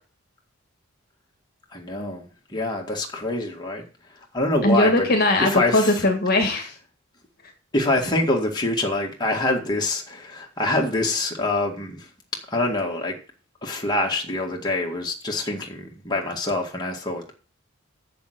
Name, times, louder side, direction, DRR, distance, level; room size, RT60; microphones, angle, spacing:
voice 1, 1.7-3.8 4.2-5.1 5.4-6.1 7.7-12.1 12.5-13.2 13.6-17.3, left 2 dB, 20° left, 2.0 m, -25 dB
voice 2, 4.6-6.7, left 1 dB, 45° left, 1.7 m, -20 dB
7.7 x 6.9 x 7.9 m
head